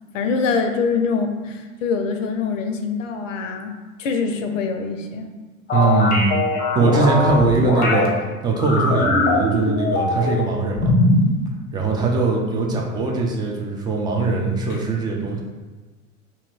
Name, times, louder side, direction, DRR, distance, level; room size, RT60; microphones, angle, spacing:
voice 1, 0.1-5.3 14.7-14.8, left 5 dB, 65° left, 5 dB, 0.6 m, -24 dB
sound 1, 5.7-8.1 8.6-10.4 10.8-11.3, left 2 dB, 20° left, 0.7 m, -20 dB
voice 2, 5.7-6.3 6.7-8.1 8.4-10.9 11.7-15.4, right 3 dB, 10° right, -1 dB, 0.4 m, -21 dB
2.8 x 2.6 x 4.2 m, 1.3 s
figure-of-eight pair, 85°, 42 cm